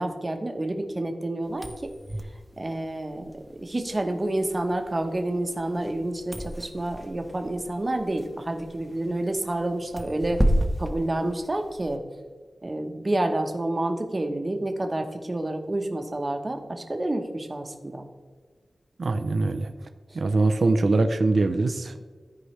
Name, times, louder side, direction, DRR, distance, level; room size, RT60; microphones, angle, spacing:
voice 1, 0.0-1.9 2.6-3.3 3.6-10.4 10.8-12.0 12.6-18.1, right 1 dB, 30° right, 5 dB, 1.0 m, -29 dB
sound 1, 1.5-12.0, equal, 5° right, 0.9 m, -32 dB
voice 2, 19.0-19.7 20.1-22.0, right 3 dB, 65° right, 8 dB, 0.5 m, -23 dB
14.0 x 4.7 x 3.2 m, 1.5 s
wide cardioid pair, 105°, 0 cm